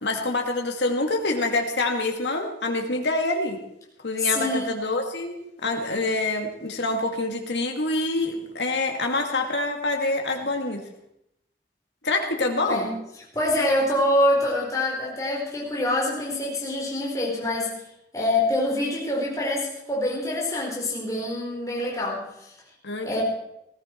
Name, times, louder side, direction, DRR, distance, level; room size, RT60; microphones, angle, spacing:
voice 1, 0.0-3.6 4.0-10.8 12.0-12.9 22.8-23.2, left 2 dB, 85° left, 3 dB, 2.2 m, -26 dB
voice 2, 4.2-4.7 12.6-12.9 13.3-17.7 18.1-22.2 23.0-23.2, left 1 dB, 20° left, -4 dB, 4.2 m, -25 dB
19.0 x 15.0 x 4.5 m, 0.81 s
head